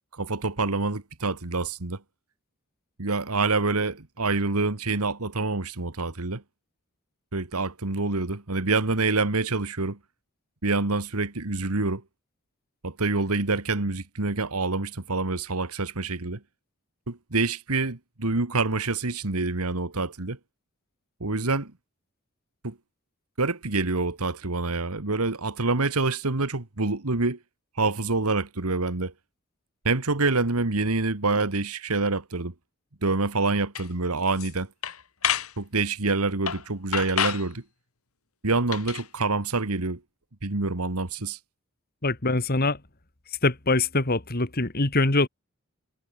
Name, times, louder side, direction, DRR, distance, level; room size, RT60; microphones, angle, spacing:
voice 1, 0.1-2.0 3.0-6.4 7.3-10.0 10.6-12.0 12.8-16.4 17.1-20.4 21.2-21.7 22.6-22.7 23.4-27.4 27.8-29.1 29.9-32.5 33.0-34.7 35.6-37.6 38.4-40.0 40.4-41.4, right 3 dB, 85° right, 1.9 m, -26 dB
sound 1, 33.7-33.9 34.3-34.5 34.8-35.5 36.5-36.6 36.9-37.5 38.7-39.1, left 8 dB, 75° left, 2.3 m, -28 dB
voice 2, 42.0-42.8 43.4-45.3, left 2 dB, 45° left, 2.2 m, -23 dB
head